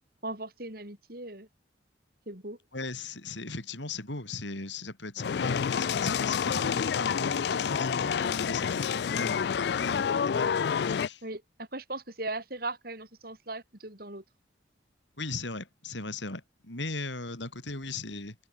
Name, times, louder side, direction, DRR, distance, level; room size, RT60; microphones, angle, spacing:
voice 1, 0.2-1.5 2.3-2.6 11.2-14.2, right 2 dB, 50° right, 6.3 m, -38 dB
voice 2, 2.7-11.2 15.2-18.4, left 3 dB, 75° left, 6.5 m, -38 dB
sound 1, 5.2-11.1, left 7 dB, 60° left, 0.3 m, -28 dB
head